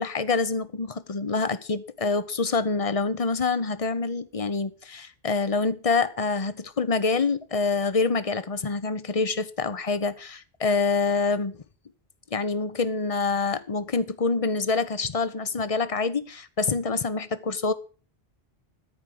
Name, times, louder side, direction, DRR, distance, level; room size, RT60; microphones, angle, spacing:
voice 1, 0.0-11.6 12.3-17.7, left 4 dB, 40° left, 0.8 m, -26 dB
13.5 x 4.9 x 7.7 m
omnidirectional pair, 1.0 m